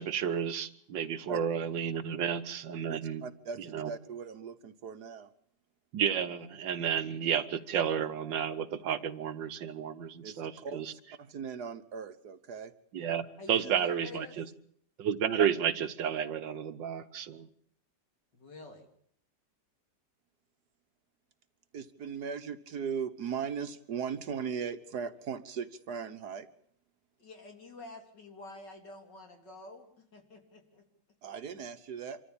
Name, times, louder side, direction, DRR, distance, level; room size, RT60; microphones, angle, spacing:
voice 1, 0.0-3.2 3.7-3.9 5.9-10.9 12.9-14.4 15.0-17.5, right 8 dB, 85° right, 11 dB, 1.9 m, -31 dB
voice 2, 2.9-5.3 10.2-12.7 13.6-13.7 21.7-26.5 31.2-32.2, right 6 dB, 65° right, 10 dB, 1.7 m, -38 dB
voice 3, 13.4-14.4 18.3-18.9 27.2-30.8, left 3 dB, 70° left, 3 dB, 4.2 m, -48 dB
26.0 x 14.5 x 8.8 m, 0.63 s
omnidirectional pair, 1.9 m